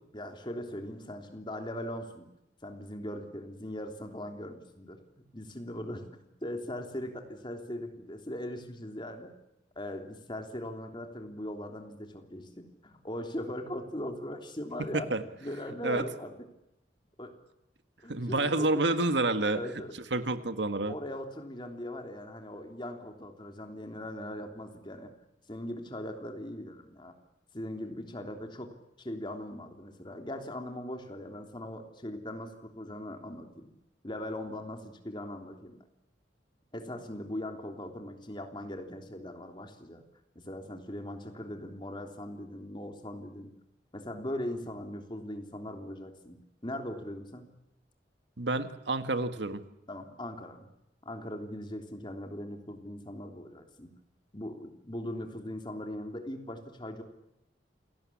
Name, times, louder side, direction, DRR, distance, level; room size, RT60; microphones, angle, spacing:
voice 1, 0.1-2.3 2.6-5.0 5.3-6.1 6.4-9.3 9.7-16.3 17.2-17.3 18.0-18.9 19.5-20.0 20.9-25.1 25.5-27.1 27.5-28.7 29.0-33.7 34.0-35.8 36.7-40.0 40.3-43.5 43.9-46.4 46.6-47.5 49.9-50.7 51.0-53.9 54.3-57.0, left 1 dB, 25° left, 4 dB, 3.3 m, -40 dB
voice 2, 18.1-19.6 20.1-21.0 48.4-49.6, right 2 dB, 75° right, 10 dB, 1.7 m, -28 dB
28.0 x 18.5 x 8.6 m, 0.87 s
head